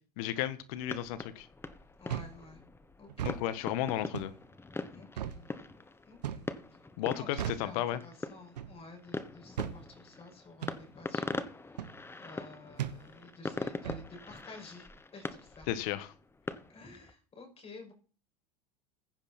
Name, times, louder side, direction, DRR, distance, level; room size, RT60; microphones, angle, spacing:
voice 1, 0.2-1.5 3.2-4.3 7.0-8.0 15.7-16.1, left 12 dB, 60° left, 1.5 m, -33 dB
sound 1, 0.7-17.1, left 3 dB, 10° left, 1.2 m, -43 dB
voice 2, 2.0-2.6 3.0-3.4 4.9-5.7 6.1-6.5 7.0-7.3 7.6-11.4 12.2-15.7 16.7-17.9, left 3 dB, 30° left, 6.1 m, -51 dB
sound 2, 2.1-2.4 3.1-3.4 4.1-4.4 5.2-5.4 6.2-6.5 7.4-7.7 8.6-8.8 9.6-9.8 10.6-10.8 11.8-12.0 12.8-13.0 13.8-14.1, right 10 dB, 80° right, 1.2 m, -36 dB
15.5 x 10.0 x 4.3 m
hypercardioid pair, 85°, 21 cm